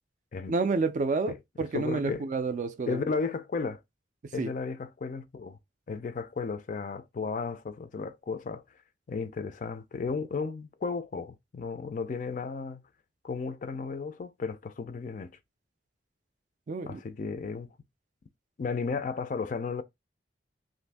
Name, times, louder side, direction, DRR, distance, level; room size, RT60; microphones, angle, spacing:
voice 1, 0.5-3.0 4.2-4.5 16.7-17.0, right 4 dB, 40° right, 0.3 m, -29 dB
voice 2, 1.7-2.3 2.9-3.8 4.3-5.6 5.9-8.6 9.1-12.8 13.2-15.4 16.9-17.7 18.6-19.8, left 4 dB, 40° left, 0.3 m, -34 dB
2.6 x 2.5 x 3.3 m
head